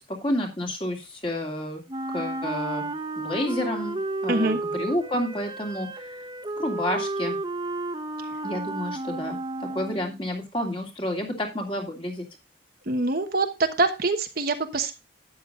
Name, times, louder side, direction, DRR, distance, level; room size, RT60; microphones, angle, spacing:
voice 1, 0.1-1.8 2.1-5.9 6.6-7.4 8.4-12.3, left 1 dB, 25° left, 1 dB, 2.6 m, -30 dB
Wind instrument woodwind instrument, 1.9-10.2, right 2 dB, 25° right, 0.8 m, -32 dB
voice 2, 4.3-4.6 12.9-14.9, right 3 dB, 50° right, 7 dB, 1.2 m, -24 dB
12.0 x 9.4 x 2.5 m, 0.25 s
head